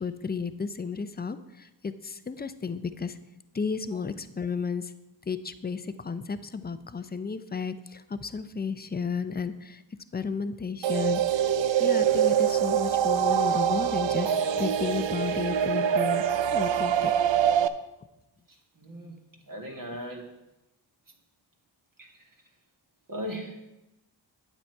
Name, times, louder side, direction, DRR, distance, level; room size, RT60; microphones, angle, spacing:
voice 1, 0.0-3.2 3.5-4.9 5.3-9.8 10.1-11.5 11.8-17.1, left 5 dB, 20° left, 12 dB, 0.6 m, -33 dB
sound 1, 10.8-17.7, right 9 dB, 75° right, 0.6 m, -24 dB
voice 2, 18.5-19.2 19.5-20.4 22.0-22.1 23.1-23.6, equal, 45° right, 0 dB, 2.0 m, -38 dB
8.8 x 7.9 x 4.6 m, 0.95 s
cardioid pair, 60°, 45 cm